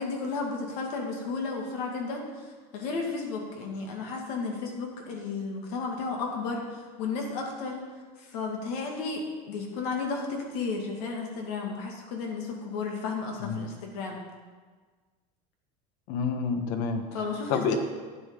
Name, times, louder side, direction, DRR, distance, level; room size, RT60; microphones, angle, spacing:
voice 1, 0.0-7.8 8.2-14.2 17.1-17.8, left 4 dB, 85° left, 0 dB, 2.2 m, -33 dB
voice 2, 16.1-17.1 17.5-17.7, left 5 dB, 65° left, 6 dB, 1.3 m, -28 dB
12.0 x 9.5 x 3.8 m, 1.4 s
cardioid pair, 165°, 19 cm